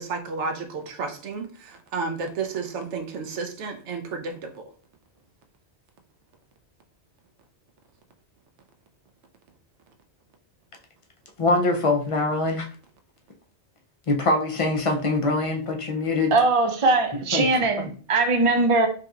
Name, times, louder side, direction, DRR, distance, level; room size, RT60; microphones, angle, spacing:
voice 1, 0.0-4.6, right 4 dB, 85° right, 1.0 m, -32 dB
voice 2, 11.4-12.7 14.1-16.4 17.3-17.9, left 2 dB, 45° left, 0.4 m, -24 dB
voice 3, 16.3-18.9, right 3 dB, 40° right, 0.5 m, -21 dB
5.0 x 2.8 x 2.3 m
omnidirectional pair, 1.2 m